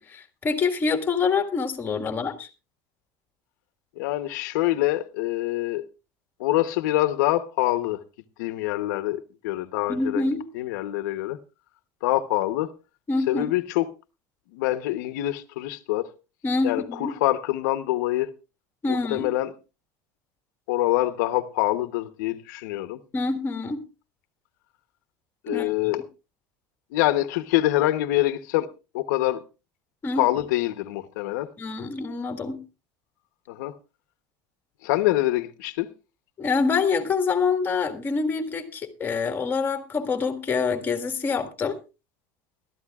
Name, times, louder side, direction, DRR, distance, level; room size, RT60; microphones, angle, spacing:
voice 1, 0.1-2.5 9.9-10.4 13.1-13.5 16.4-17.1 18.8-19.3 23.1-23.8 25.5-25.7 30.0-30.3 31.6-32.6 36.4-41.8, left 4 dB, 20° left, 1.7 m, -26 dB
voice 2, 4.0-5.8 6.4-8.0 8.4-11.4 12.0-12.7 13.3-13.9 14.5-16.1 16.6-18.3 18.9-19.5 20.7-23.0 25.4-26.0 26.9-28.7 28.9-29.4 30.2-31.5 33.5-33.7 34.8-35.9, left 16 dB, 85° left, 0.9 m, -25 dB
22.0 x 12.5 x 2.4 m
cardioid pair, 150°, 9 cm